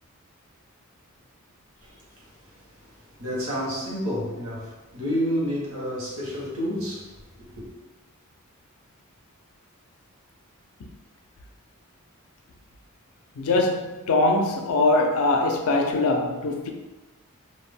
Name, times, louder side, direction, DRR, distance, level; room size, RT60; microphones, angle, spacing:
voice 1, 3.2-7.1 7.4-7.7, equal, 70° right, 1.0 m, -29 dB
voice 2, 13.4-16.7, left 2 dB, 80° left, 0.4 m, -22 dB
2.3 x 2.0 x 3.4 m
head